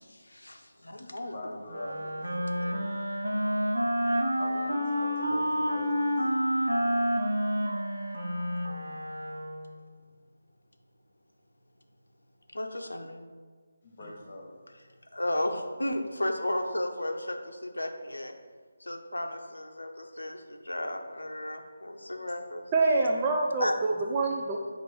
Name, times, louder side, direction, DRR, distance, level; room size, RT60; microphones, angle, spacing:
voice 1, 0.0-1.6 12.5-13.2 14.0-14.1 15.1-18.3 18.8-22.6 23.6-23.7, left 1 dB, 90° left, 5 dB, 0.5 m, -34 dB
voice 2, 1.3-2.9 4.4-6.3 13.8-14.5, left 1 dB, 40° left, -1 dB, 1.1 m, -43 dB
Wind instrument woodwind instrument, 1.7-9.8, equal, 90° right, 0.7 m, -29 dB
voice 3, 22.7-24.6, right 3 dB, 20° right, -1 dB, 0.3 m, -26 dB
4.5 x 2.5 x 4.7 m, 1.5 s
figure-of-eight pair, 160°, 0 cm